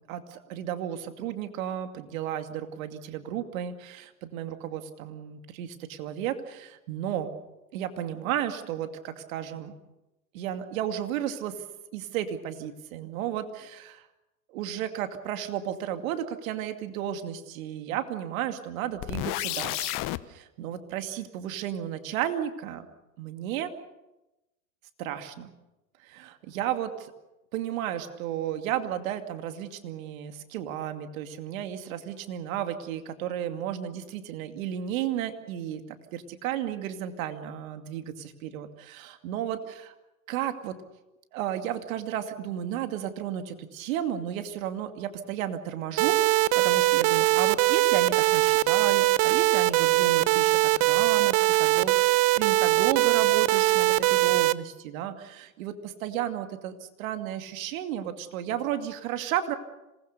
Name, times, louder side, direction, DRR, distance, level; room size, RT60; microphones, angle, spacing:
voice 1, 0.1-7.3 7.7-9.7 10.3-11.6 11.9-14.0 14.5-20.0 20.3-22.9 23.2-23.7 25.0-25.5 26.0-27.1 27.5-35.8 36.1-39.9 40.3-40.8 41.3-59.5, right 10 dB, 75° right, 7 dB, 2.5 m, -33 dB
sound 1, 19.0-20.2, left 18 dB, 50° left, 1.1 m, -31 dB
sound 2, 46.0-54.5, right 19 dB, 55° right, 1.0 m, -21 dB
26.5 x 20.0 x 6.8 m, 0.98 s
hypercardioid pair, 95°, 41 cm